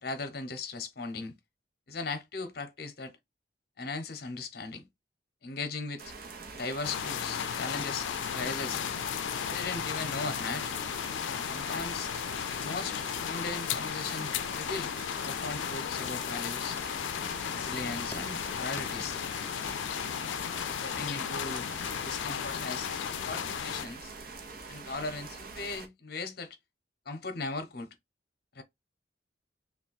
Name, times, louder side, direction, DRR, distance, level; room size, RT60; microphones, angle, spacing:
voice 1, 0.0-1.3 1.9-3.1 3.8-4.9 5.4-6.1 6.5-8.8 9.4-10.7 11.5-12.1 12.6-14.9 15.2-16.8 17.5-19.2 20.7-21.7 22.0-22.9 23.2-24.1 24.7-26.6 27.1-27.9 28.5-28.6, left 3 dB, 55° left, 0.8 m, -38 dB
sound 1, 6.0-25.9, right 4 dB, 55° right, 0.8 m, -45 dB
sound 2, 6.8-23.9, left 9 dB, 90° left, 0.4 m, -35 dB
sound 3, 16.4-22.6, left 2 dB, 10° left, 0.4 m, -50 dB
3.4 x 2.3 x 4.0 m
head